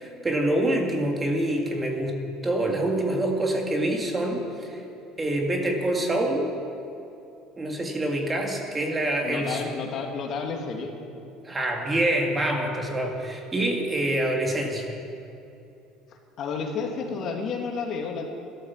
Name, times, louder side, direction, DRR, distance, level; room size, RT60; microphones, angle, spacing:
voice 1, 0.0-2.1 2.4-4.8 5.2-6.5 7.6-9.6 11.4-14.9, right 1 dB, 20° right, 2 dB, 2.1 m, -26 dB
voice 2, 9.2-10.9 16.4-18.3, left 5 dB, 50° left, 2 dB, 2.1 m, -31 dB
13.0 x 12.0 x 7.2 m, 2.8 s
cardioid pair, 120°, 0 cm